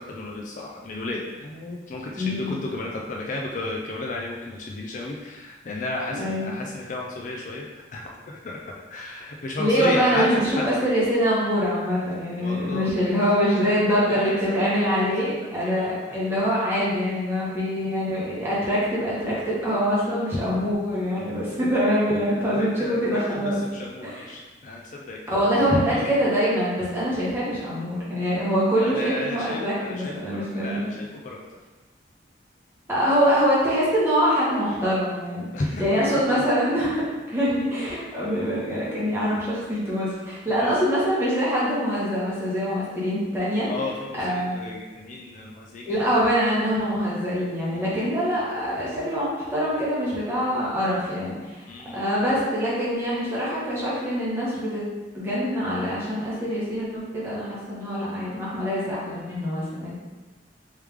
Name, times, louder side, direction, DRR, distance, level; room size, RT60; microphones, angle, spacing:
voice 1, 0.0-8.6 8.9-10.6 12.4-13.2 13.6-15.9 22.3-25.4 25.9-26.0 28.8-31.6 35.5-36.0 40.5-40.8 43.6-46.0 47.7-48.1 51.7-52.1, left 2 dB, 45° left, -1 dB, 0.4 m, -33 dB
voice 2, 2.2-2.5 6.2-6.5 9.6-23.6 24.0-24.3 25.3-30.9 32.9-35.4 35.8-43.7 44.2-44.6 45.8-51.6 51.9-54.8 55.1-59.9, equal, 15° right, -9 dB, 1.2 m, -24 dB
3.2 x 3.2 x 3.5 m, 1.2 s
head